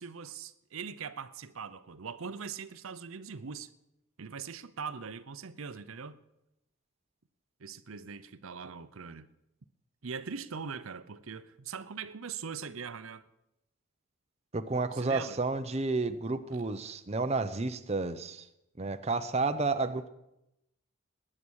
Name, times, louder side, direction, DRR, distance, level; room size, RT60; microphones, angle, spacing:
voice 1, 0.0-3.7 4.2-6.2 7.6-9.3 10.0-13.2 14.9-15.4, right 6 dB, 70° right, 0.7 m, -41 dB
voice 2, 14.5-18.4 18.8-20.1, right 3 dB, 30° right, 0.7 m, -31 dB
19.5 x 9.9 x 6.3 m
head